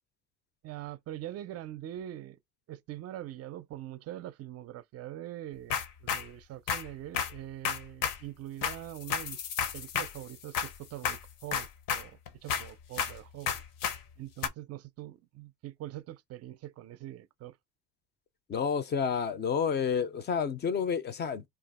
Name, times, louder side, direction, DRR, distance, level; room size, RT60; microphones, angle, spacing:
voice 1, 0.6-2.4 2.7-9.4 9.7-13.6 14.2-17.6, right 13 dB, 45° right, 0.4 m, -43 dB
sound 1, 5.7-6.3 6.7-8.2 8.6-10.8 11.0-13.2 13.5-14.0 14.4-14.5, left 7 dB, 75° left, 0.8 m, -32 dB
voice 2, 18.5-21.4, left 6 dB, 30° left, 0.4 m, -30 dB
2.8 x 2.4 x 4.0 m
cardioid pair, 140°, 34 cm